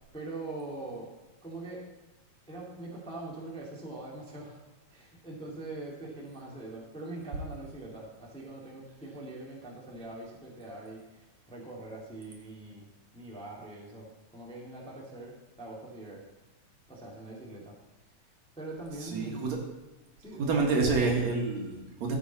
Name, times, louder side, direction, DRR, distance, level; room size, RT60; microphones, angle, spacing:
voice 1, 0.1-1.1 1.4-1.8 2.5-4.6 4.9-16.2 16.9-17.7 18.5-19.5 20.2-20.6, right 2 dB, ahead, -3 dB, 1.5 m, -43 dB
voice 2, 19.0-19.6 20.4-22.2, right 4 dB, 65° right, 0 dB, 2.7 m, -28 dB
13.5 x 8.1 x 4.1 m, 1.1 s
omnidirectional pair, 3.6 m